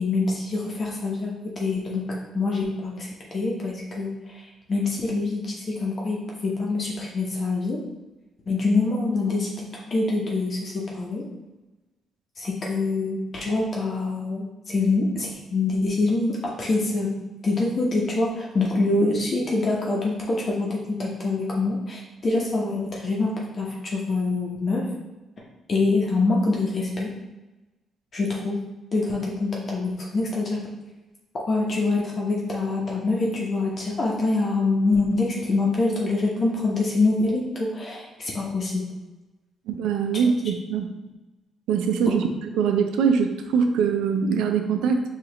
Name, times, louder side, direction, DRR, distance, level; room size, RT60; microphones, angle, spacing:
voice 1, 0.0-7.8 8.5-11.2 12.4-17.1 17.4-24.9 25.7-27.1 28.1-28.6 28.9-30.6 31.5-38.8 42.1-42.2, left 3 dB, 45° left, -3 dB, 0.8 m, -25 dB
voice 2, 39.7-40.9 41.7-42.3 42.5-45.0, right 6 dB, 90° right, 6 dB, 0.4 m, -22 dB
4.7 x 2.4 x 3.0 m, 1.1 s
cardioid pair, 90°, 0 cm